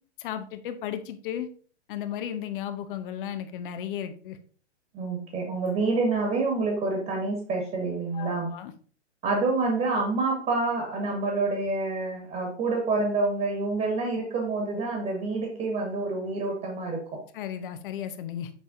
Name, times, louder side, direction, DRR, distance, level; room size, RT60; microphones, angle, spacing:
voice 1, 0.2-1.5 1.9-4.4 8.1-8.7 17.3-18.5, left 9 dB, 45° left, 10 dB, 0.8 m, -34 dB
voice 2, 4.9-8.5 9.2-17.2, right 3 dB, 25° right, 0 dB, 2.0 m, -27 dB
7.1 x 4.9 x 2.7 m, 0.43 s
hypercardioid pair, 120°, 35 cm